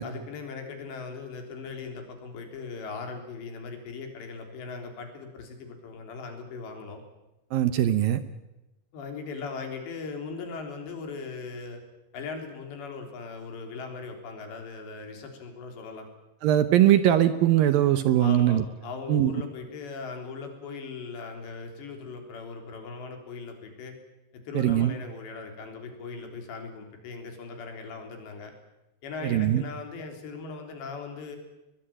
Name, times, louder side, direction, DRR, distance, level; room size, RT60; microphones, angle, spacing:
voice 1, 0.0-7.0 8.9-11.8 12.1-16.1 18.2-23.9 24.3-28.5 29.0-31.4, left 4 dB, 85° left, 4 dB, 6.0 m, -39 dB
voice 2, 7.5-8.2 16.4-18.6 19.1-19.3 24.6-24.9 29.2-29.6, right 12 dB, 70° right, 11 dB, 2.3 m, -21 dB
22.0 x 21.5 x 8.9 m, 0.99 s
omnidirectional pair, 4.9 m